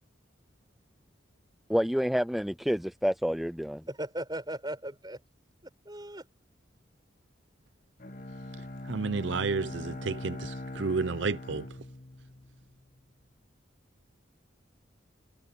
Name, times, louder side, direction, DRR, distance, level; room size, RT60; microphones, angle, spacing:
voice 1, 1.7-3.8, equal, ahead, 0.4 m, -28 dB
voice 2, 3.9-5.2 5.8-6.3, right 1 dB, 20° right, 6.9 m, -37 dB
Bowed string instrument, 8.0-13.0, left 1 dB, 45° left, 1.5 m, -41 dB
voice 3, 8.9-11.7, right 4 dB, 75° right, 0.7 m, -31 dB
head